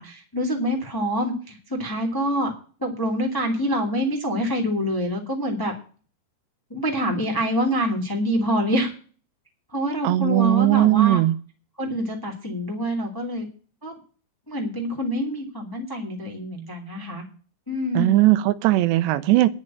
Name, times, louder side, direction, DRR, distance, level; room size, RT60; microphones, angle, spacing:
voice 1, 0.0-2.5 2.8-5.7 6.7-8.9 9.7-11.2 11.8-13.4 13.8-13.9 14.5-17.2 17.7-18.1, equal, 10° left, 1 dB, 1.6 m, -26 dB
voice 2, 10.0-11.4 18.0-19.5, right 16 dB, 90° right, 14 dB, 3.0 m, -18 dB
10.5 x 6.5 x 8.8 m, 0.39 s
omnidirectional pair, 4.9 m